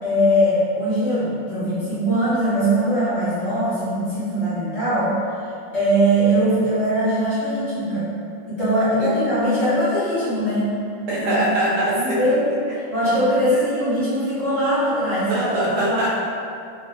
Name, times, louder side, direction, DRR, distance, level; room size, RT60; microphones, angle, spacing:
voice 1, 0.0-5.1 5.7-8.1 8.5-10.7 11.2-11.4 11.8-12.4 12.9-15.5 15.8-16.1, equal, 35° left, -14 dB, 1.5 m, -21 dB
voice 2, 11.1-12.4 13.5-13.6 15.3-16.2, right 1 dB, 90° right, -8 dB, 1.9 m, -23 dB
3.7 x 3.3 x 2.8 m, 2.4 s
omnidirectional pair, 2.4 m